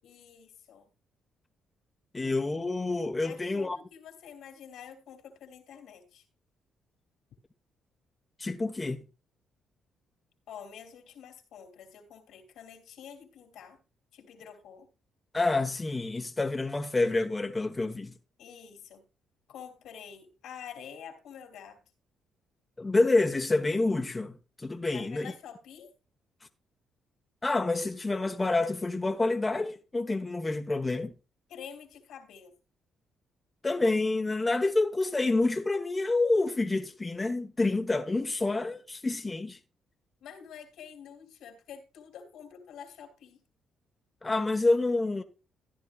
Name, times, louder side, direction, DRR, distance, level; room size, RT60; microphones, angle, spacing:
voice 1, 0.0-0.9 3.2-6.2 10.5-13.8 14.1-14.9 18.4-19.1 19.5-21.9 24.9-25.9 31.5-32.5 40.2-43.4, left 8 dB, 80° left, 3.1 m, -48 dB
voice 2, 2.1-3.8 8.4-9.0 15.3-18.1 22.8-25.3 27.4-31.1 33.6-39.6 44.2-45.2, left 2 dB, 20° left, 1.2 m, -28 dB
14.0 x 10.5 x 2.4 m
cardioid pair, 90°, 0 cm